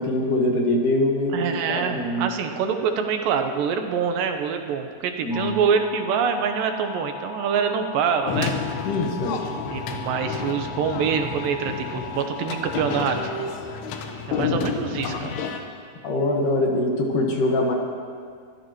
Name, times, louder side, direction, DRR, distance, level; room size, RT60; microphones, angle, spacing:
voice 1, 0.0-2.3 5.2-5.6 8.8-9.4 16.0-17.7, left 1 dB, 60° left, 0 dB, 2.7 m, -23 dB
voice 2, 1.3-8.5 9.7-13.3 14.3-15.3, right 7 dB, 75° right, 5 dB, 2.3 m, -25 dB
sound 1, 5.3-13.0, left 6 dB, 15° right, 0.9 m, -38 dB
sound 2, 8.3-15.6, left 5 dB, 85° left, 3.1 m, -30 dB
25.0 x 15.0 x 3.0 m, 2.1 s
omnidirectional pair, 4.6 m